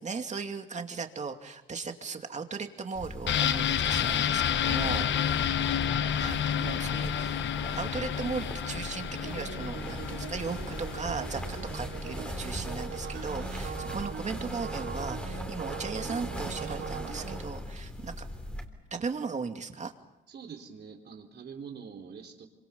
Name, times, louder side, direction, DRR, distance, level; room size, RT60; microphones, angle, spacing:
voice 1, 0.0-5.1 6.2-7.4 7.8-18.3 18.9-19.9, right 5 dB, 35° right, 5 dB, 2.6 m, -37 dB
sound 1, 2.9-18.6, left 1 dB, 5° left, 3.6 m, -39 dB
sound 2, 3.3-12.9 13.2-13.3, left 9 dB, 65° left, 1.0 m, -30 dB
voice 2, 5.2-5.5 13.8-14.1 20.3-22.5, right 6 dB, 55° right, 4 dB, 3.7 m, -45 dB
sound 3, 9.2-17.4, right 7 dB, 75° right, 3.1 m, -41 dB
26.0 x 25.0 x 7.1 m, 0.95 s
cardioid pair, 90°, 20 cm